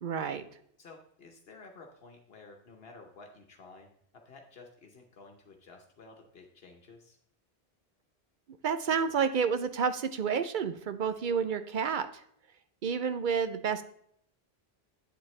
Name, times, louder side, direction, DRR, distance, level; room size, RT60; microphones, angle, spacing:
voice 1, 0.0-0.5 8.6-12.2 12.8-13.8, right 6 dB, 60° right, 10 dB, 0.7 m, -30 dB
voice 2, 0.8-3.9 4.1-7.2, left 3 dB, 70° left, 3 dB, 1.1 m, -53 dB
9.0 x 7.4 x 3.2 m, 0.66 s
omnidirectional pair, 1.1 m